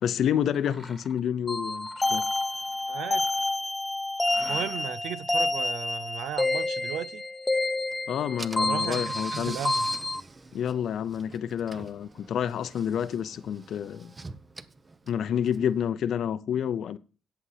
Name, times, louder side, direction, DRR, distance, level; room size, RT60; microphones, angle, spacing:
voice 1, 0.0-2.2 8.1-9.6 10.5-14.1 15.1-17.0, left 9 dB, 65° left, 0.6 m, -29 dB
Mechanisms, 0.5-1.3 1.8-3.7 4.2-5.1, right 1 dB, 5° right, 2.0 m, -48 dB
sound 1, 1.5-10.2, left 2 dB, 15° left, 0.8 m, -29 dB
voice 2, 2.9-3.3 4.4-7.2 8.6-9.9, right 10 dB, 85° right, 0.6 m, -35 dB
Car / Engine, 7.9-8.0 8.4-15.8, right 3 dB, 25° right, 0.9 m, -45 dB
8.4 x 8.0 x 5.7 m
cardioid pair, 90°, 0 cm